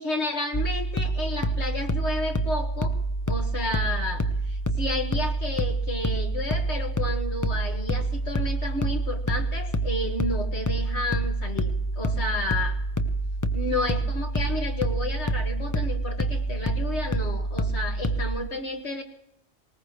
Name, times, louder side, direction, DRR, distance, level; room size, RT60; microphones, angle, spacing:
voice 1, 0.0-3.0 3.3-12.8 13.5-19.0, left 2 dB, 70° left, 3 dB, 2.2 m, -31 dB
sound 1, 0.5-18.4, right 2 dB, 20° left, 0.7 m, -27 dB
19.5 x 19.5 x 3.2 m, 0.80 s
omnidirectional pair, 1.2 m